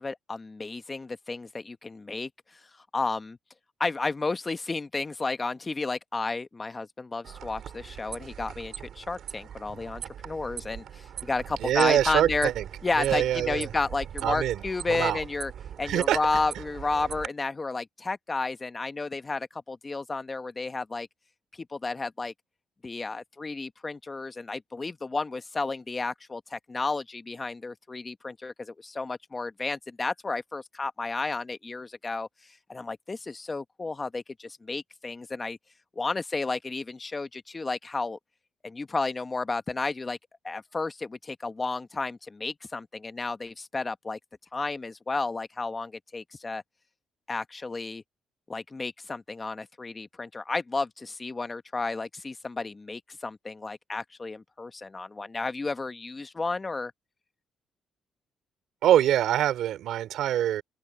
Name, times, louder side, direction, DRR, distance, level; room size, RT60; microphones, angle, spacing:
voice 1, 0.0-2.3 2.9-3.4 3.8-12.5 12.8-15.5 15.8-21.1 21.7-22.3 22.8-32.3 32.7-35.6 36.0-38.2 38.6-40.2 40.4-44.2 44.5-46.6 47.3-48.0 48.5-56.9, left 3 dB, 20° left, 1.0 m, -32 dB
sound 1, 7.2-17.3, right 9 dB, 60° right, 3.8 m, -41 dB
voice 2, 11.6-12.7 12.9-13.7 14.2-14.6 14.9-15.2 15.8-16.2 58.8-60.6, right 11 dB, 80° right, 3.4 m, -24 dB
cardioid pair, 145°, 0 cm